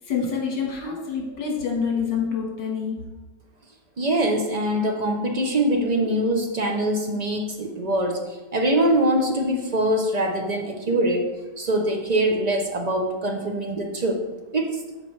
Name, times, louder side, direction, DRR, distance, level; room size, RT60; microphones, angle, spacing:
voice 1, 0.0-3.1, left 6 dB, 85° left, -1 dB, 2.1 m, -27 dB
voice 2, 4.0-8.2 8.5-11.3 11.6-14.2 14.5-14.8, right 1 dB, 65° right, 1 dB, 0.4 m, -23 dB
11.5 x 4.6 x 3.2 m, 1.1 s
omnidirectional pair, 1.9 m